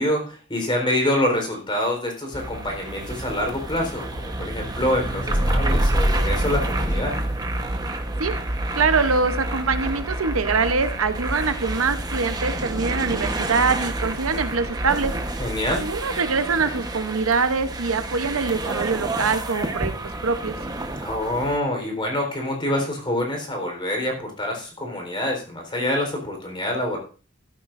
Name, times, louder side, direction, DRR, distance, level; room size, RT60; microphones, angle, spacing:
voice 1, 0.0-7.2 15.4-15.9 21.0-27.0, left 1 dB, 25° left, 2 dB, 4.0 m, -26 dB
sound 1, 2.3-21.6, right 1 dB, 20° right, 1.1 m, -28 dB
voice 2, 8.8-15.1 15.7-19.9 20.2-20.6, right 4 dB, 75° right, 10 dB, 0.9 m, -24 dB
14.5 x 13.0 x 2.6 m, 0.37 s
head